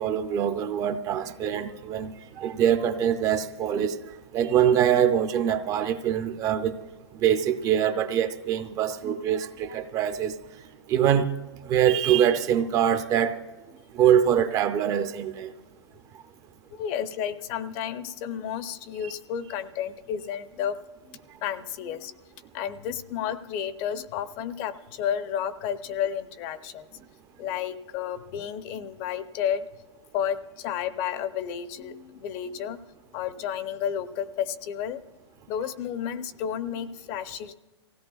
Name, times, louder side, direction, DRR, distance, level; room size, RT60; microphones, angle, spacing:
voice 1, 0.0-2.1 2.4-4.0 4.3-6.8 7.2-10.3 10.9-11.3 11.7-13.4 13.9-15.5, right 9 dB, 25° right, 10 dB, 0.5 m, -23 dB
voice 2, 16.7-20.8 21.0-22.1 22.5-26.9 27.4-29.7 30.1-32.8 33.1-35.0 35.5-37.5, left 9 dB, 35° left, 13 dB, 0.6 m, -31 dB
25.0 x 16.5 x 2.3 m, 1.2 s
hypercardioid pair, 145°, 14 cm